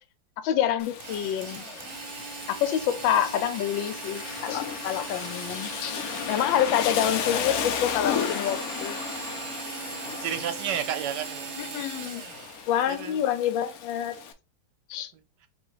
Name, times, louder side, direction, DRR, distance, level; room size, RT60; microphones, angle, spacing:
voice 1, 0.4-1.6 2.6-6.0 6.3-9.0 11.6-12.2 12.7-14.2 14.9-15.1, left 10 dB, 85° left, 1.3 m, -27 dB
Rain, 0.8-14.3, left 7 dB, 70° left, 0.9 m, -34 dB
Drill, 1.0-7.1 8.0-12.7, right 5 dB, 50° right, 1.0 m, -39 dB
voice 2, 10.2-11.8 12.9-13.2 15.1-15.5, right 9 dB, 75° right, 1.2 m, -32 dB
3.1 x 2.9 x 4.6 m
omnidirectional pair, 2.0 m